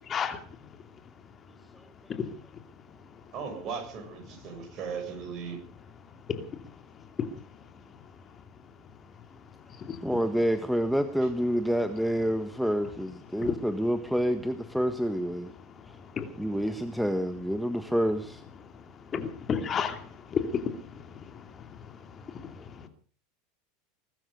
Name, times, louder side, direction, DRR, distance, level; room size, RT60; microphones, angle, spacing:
voice 1, 0.1-0.4 6.4-6.5 7.2-7.3 9.8-10.0 13.4-13.5 16.1-16.3 19.1-22.9, left 7 dB, 30° left, 2.7 m, -33 dB
voice 2, 3.3-5.6, right 6 dB, 40° right, 7.4 m, -37 dB
voice 3, 10.0-15.5 16.4-18.4, equal, ahead, 1.5 m, -28 dB
21.5 x 12.5 x 5.3 m
hypercardioid pair, 80°, 0 cm